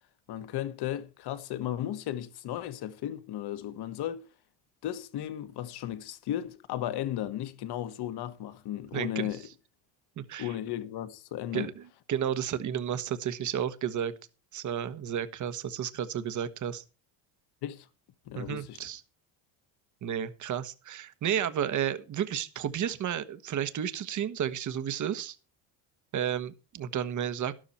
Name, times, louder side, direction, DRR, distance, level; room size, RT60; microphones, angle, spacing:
voice 1, 0.3-4.3 4.8-9.5 10.4-11.7 17.6-17.9 18.3-18.8, left 12 dB, 55° left, 1.6 m, -35 dB
voice 2, 8.9-9.3 10.2-10.5 11.5-11.8 12.1-14.1 14.5-16.8 18.3-19.0 20.0-25.4 26.1-27.5, right 9 dB, 40° right, 1.4 m, -32 dB
12.5 x 12.0 x 4.4 m
cardioid pair, 120°, 47 cm